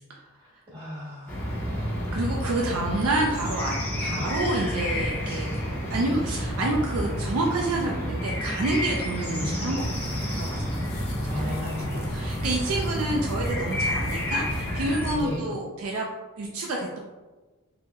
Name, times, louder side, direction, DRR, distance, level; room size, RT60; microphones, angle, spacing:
voice 1, 0.4-1.4 4.1-4.3 9.2-9.5 11.3-12.1 15.1-15.5, left 1 dB, 25° right, -7 dB, 1.3 m, -35 dB
sound 1, 1.3-15.2, equal, 10° left, 0.7 m, -30 dB
voice 2, 2.1-5.5 5.9-9.8 10.3-10.6 11.2-16.1 16.4-17.0, right 2 dB, 75° right, -1 dB, 0.4 m, -28 dB
sound 2, 9.8-15.4, left 1 dB, 80° left, 0.5 m, -43 dB
3.5 x 2.1 x 2.8 m, 1.2 s
head